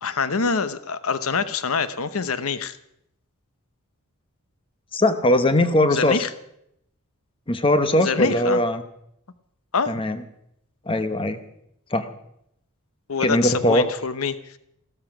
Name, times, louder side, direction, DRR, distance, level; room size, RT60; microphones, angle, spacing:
voice 1, 0.0-2.8 5.9-6.3 8.0-8.6 9.7-10.0 13.1-14.4, left 5 dB, 70° left, 13 dB, 0.8 m, -25 dB
voice 2, 4.9-6.3 7.5-8.8 9.9-10.2 10.9-11.4 11.9-12.1 13.2-13.8, left 1 dB, 25° left, 9 dB, 1.0 m, -20 dB
15.0 x 13.0 x 6.0 m, 0.75 s
head